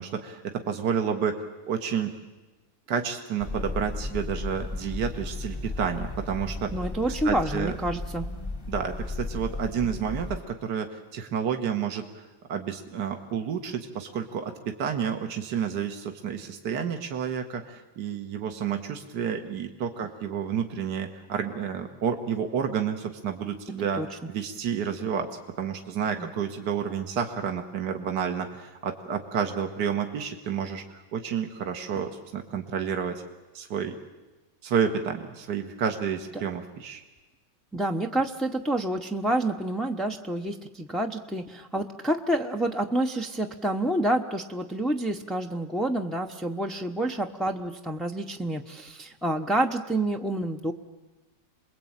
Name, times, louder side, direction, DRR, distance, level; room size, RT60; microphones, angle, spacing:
voice 1, 0.0-1.4 1.7-2.1 2.9-6.7 7.1-7.8 8.7-12.2 12.5-25.3 25.6-33.2 33.5-34.0 34.6-37.0, right 7 dB, 70° right, 5 dB, 2.0 m, -30 dB
sound 1, 3.4-10.4, left 2 dB, 15° left, 0.9 m, -35 dB
voice 2, 6.7-8.3 23.7-24.1 26.2-26.3 37.7-50.7, right 1 dB, ahead, 3 dB, 0.5 m, -28 dB
28.5 x 21.5 x 8.9 m, 1.2 s
omnidirectional pair, 1.9 m